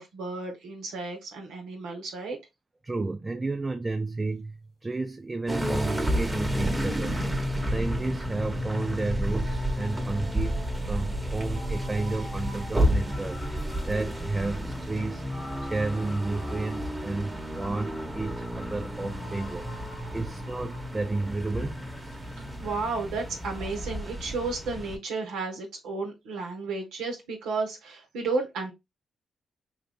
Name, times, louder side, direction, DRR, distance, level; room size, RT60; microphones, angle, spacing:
voice 1, 0.0-2.4 22.6-28.7, right 3 dB, 80° right, 0.8 m, -33 dB
voice 2, 2.8-7.2 7.6-15.3 15.6-21.8, right 3 dB, 30° right, 0.5 m, -32 dB
sound 1, 5.5-25.0, equal, 15° right, 1.1 m, -31 dB
sound 2, 9.3-23.2 23.5-23.6, left 1 dB, 65° left, 1.4 m, -48 dB
3.2 x 2.4 x 3.4 m
hypercardioid pair, 40°, 0 cm